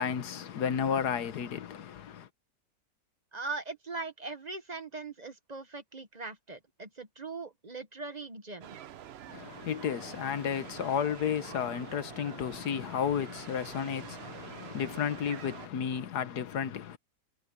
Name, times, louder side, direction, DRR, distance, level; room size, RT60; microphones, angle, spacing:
voice 1, 0.0-2.3 9.3-17.0, left 8 dB, 70° left, 1.5 m, -32 dB
voice 2, 3.3-8.8, right 3 dB, 30° right, 1.0 m, -40 dB
sound 1, 8.6-15.7, right 10 dB, 75° right, 0.6 m, -46 dB
omnidirectional pair, 1.8 m